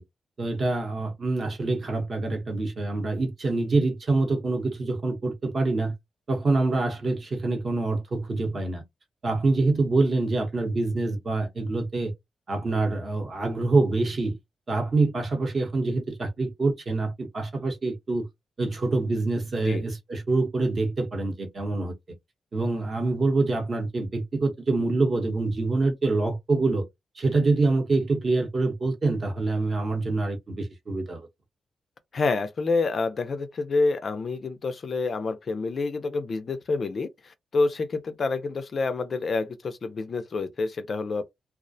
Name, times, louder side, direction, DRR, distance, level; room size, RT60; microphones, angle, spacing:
voice 1, 0.4-5.9 6.3-8.8 9.2-12.1 12.5-14.4 14.7-18.3 18.6-21.9 22.5-26.8 27.1-31.3, right 3 dB, 35° right, 0.8 m, -25 dB
voice 2, 32.1-41.2, left 3 dB, 40° left, 0.4 m, -28 dB
2.3 x 2.0 x 2.6 m
wide cardioid pair, 165°, 0 cm